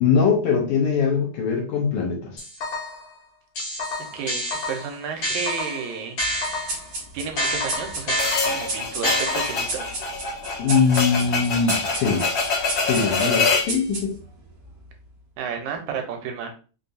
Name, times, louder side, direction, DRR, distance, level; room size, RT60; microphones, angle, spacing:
voice 1, 0.0-2.4 10.6-12.3 12.8-14.2, left 5 dB, 75° left, 0 dB, 1.4 m, -22 dB
sound 1, 2.4-3.1 3.6-6.9 7.4-9.8, left 1 dB, 55° left, 1.6 m, -28 dB
voice 2, 4.7-6.2 7.1-8.2 8.5-9.8 15.4-16.5, right 6 dB, 80° right, 4 dB, 2.0 m, -31 dB
sound 2, 6.2-15.1, right 2 dB, 65° right, 1.2 m, -35 dB
sound 3, 8.2-13.7, left 4 dB, 90° left, 0.9 m, -25 dB
4.9 x 2.2 x 2.6 m, 0.37 s
omnidirectional pair, 3.5 m